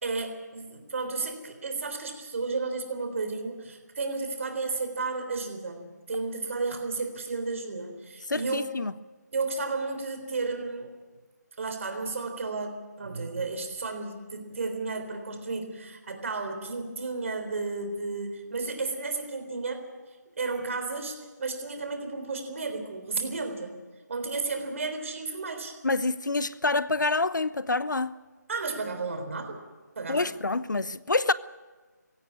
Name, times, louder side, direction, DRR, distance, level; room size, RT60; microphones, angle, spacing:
voice 1, 0.0-8.7 9.3-10.9 11.6-19.9 20.4-23.7 24.1-25.8 28.5-29.6 30.0-30.3, right 3 dB, 45° right, 3.7 m, -33 dB
voice 2, 8.3-8.9 25.8-28.1 30.1-31.3, left 3 dB, 80° left, 0.8 m, -27 dB
17.5 x 16.0 x 9.6 m
figure-of-eight pair, 160°, 10 cm